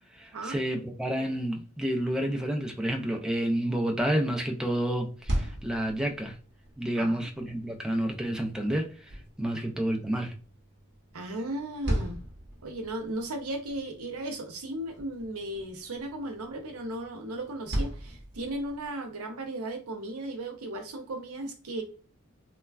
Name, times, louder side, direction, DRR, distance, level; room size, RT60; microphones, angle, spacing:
voice 1, 0.1-6.4 6.8-9.1 9.4-10.3, right 1 dB, 5° right, 0.4 m, -29 dB
sound 1, 5.0-18.9, equal, 55° right, 0.8 m, -39 dB
voice 2, 6.9-7.3 9.5-9.6 11.1-12.2 12.6-21.8, right 1 dB, 75° right, 0.6 m, -36 dB
3.1 x 2.2 x 2.3 m
head